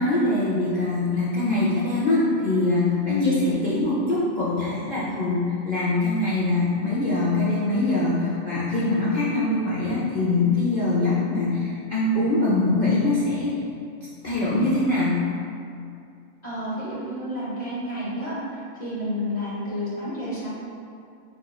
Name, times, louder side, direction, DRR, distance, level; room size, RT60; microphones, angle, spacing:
voice 1, 0.0-13.6 14.2-15.2, left 2 dB, 75° left, -9 dB, 0.4 m, -23 dB
voice 2, 16.4-18.3 18.8-20.5, left 1 dB, 35° left, -9 dB, 0.9 m, -29 dB
3.7 x 3.0 x 2.2 m, 2.5 s
omnidirectional pair, 1.4 m